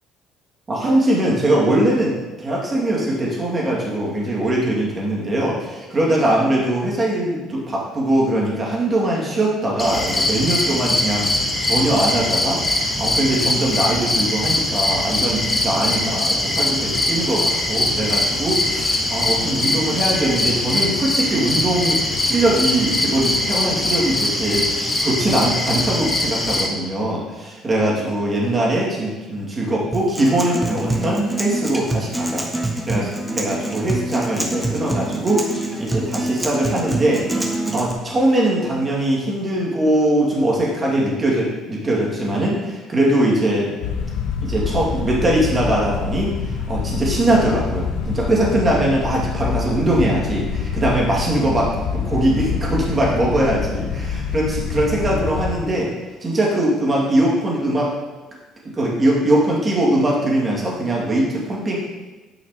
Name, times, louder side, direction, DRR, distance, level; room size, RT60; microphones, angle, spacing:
voice 1, 0.7-2.1 2.4-32.5 32.8-37.3 37.7-43.7 44.4-55.9 56.2-57.9 58.8-61.8, right 1 dB, 30° right, -3 dB, 2.4 m, -21 dB
sound 1, 9.8-26.7, left 2 dB, 25° left, 1.3 m, -22 dB
Acoustic guitar, 29.9-37.9, right 2 dB, 10° right, 1.2 m, -25 dB
sound 2, 43.8-55.6, left 6 dB, 75° left, 0.7 m, -26 dB
9.3 x 5.7 x 3.1 m, 1.2 s
hypercardioid pair, 60°, 0 cm